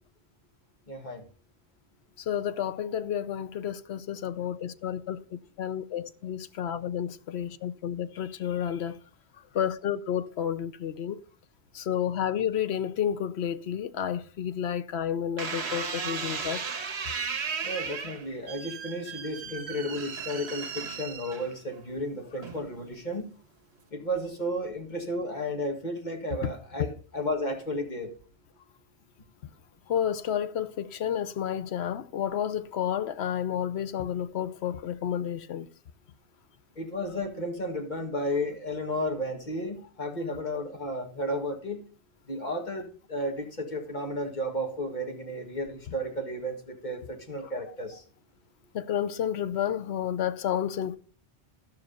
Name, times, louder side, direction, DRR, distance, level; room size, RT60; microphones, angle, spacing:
voice 1, 0.9-1.2 17.6-23.2 23.9-28.1 36.8-41.8 42.3-48.0, equal, 45° left, 1.7 m, -33 dB
voice 2, 2.3-9.0 9.5-11.2 11.7-16.6 26.4-26.5 29.9-35.7 47.4-47.5 48.7-51.0, left 9 dB, 75° left, 1.0 m, -31 dB
sound 1, 15.4-21.8 22.4-22.9, right 5 dB, 80° right, 1.4 m, -35 dB
12.5 x 5.8 x 5.2 m
omnidirectional pair, 1.1 m